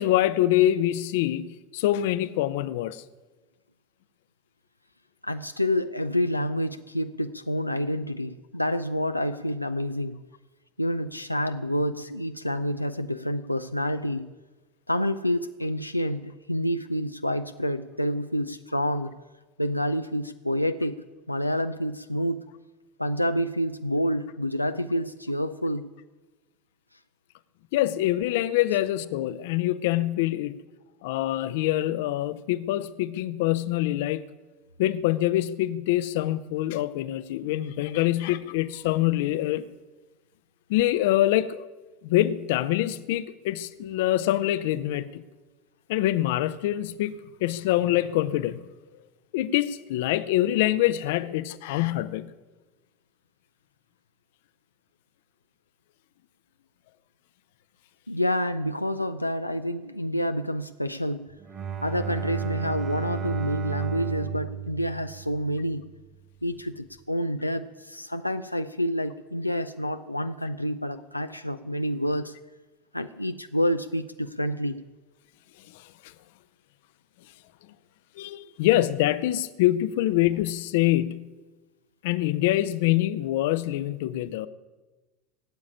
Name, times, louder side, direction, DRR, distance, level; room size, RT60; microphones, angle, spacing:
voice 1, 0.0-3.0 27.7-30.6 31.0-34.2 34.8-39.7 40.7-41.6 42.0-45.2 45.9-48.6 49.3-52.3 75.7-75.8 78.2-81.3 82.0-84.5, left 14 dB, 55° left, 0.7 m, -25 dB
voice 2, 5.2-10.2 10.8-14.3 14.9-19.1 19.6-21.0 21.3-22.5 23.0-25.9 58.1-61.3 61.8-65.9 66.4-72.3 72.9-74.8, equal, 90° left, 0.4 m, -28 dB
Bowed string instrument, 61.4-65.9, right 7 dB, 30° right, 2.3 m, -33 dB
17.0 x 8.5 x 9.9 m
figure-of-eight pair, 80°, 0 cm